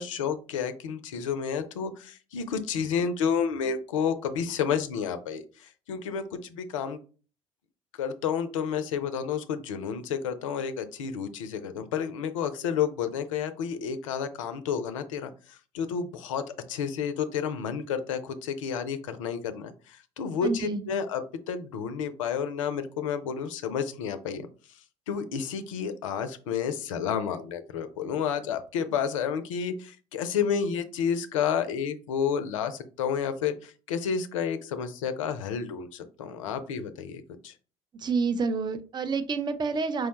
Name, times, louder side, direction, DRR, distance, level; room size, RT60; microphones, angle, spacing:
voice 1, 0.0-5.4 5.9-7.0 8.0-15.3 15.7-16.4 16.7-21.2 21.5-24.5 25.1-37.5, left 7 dB, 70° left, 11 dB, 0.4 m, -30 dB
voice 2, 20.4-20.8 37.9-40.1, right 4 dB, 25° right, 9 dB, 0.5 m, -28 dB
4.5 x 2.1 x 2.9 m, 0.38 s
figure-of-eight pair, 60°, 17 cm